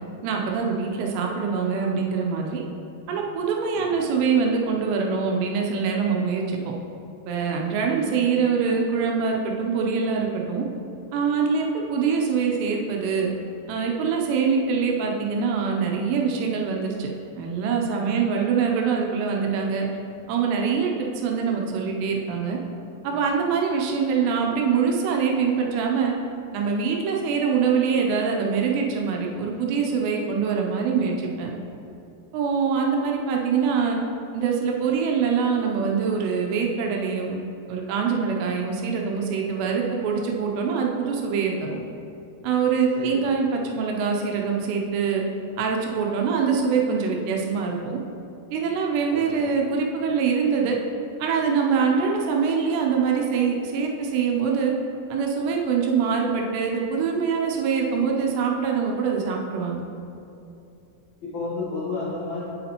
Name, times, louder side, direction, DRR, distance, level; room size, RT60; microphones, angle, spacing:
voice 1, 0.2-2.6 3.1-6.6 7.3-10.6 11.1-13.3 13.7-17.1 17.4-19.9 20.3-22.6 23.0-26.2 26.5-31.5 32.3-34.0 34.3-37.4 37.7-41.8 42.4-45.2 45.6-48.0 48.5-50.8 51.2-54.7 55.1-59.9, right 6 dB, 80° right, 0 dB, 2.7 m, -24 dB
voice 2, 49.1-49.4 61.2-62.4, left 3 dB, 65° left, -10 dB, 1.8 m, -31 dB
8.4 x 8.0 x 2.9 m, 2.7 s
omnidirectional pair, 5.0 m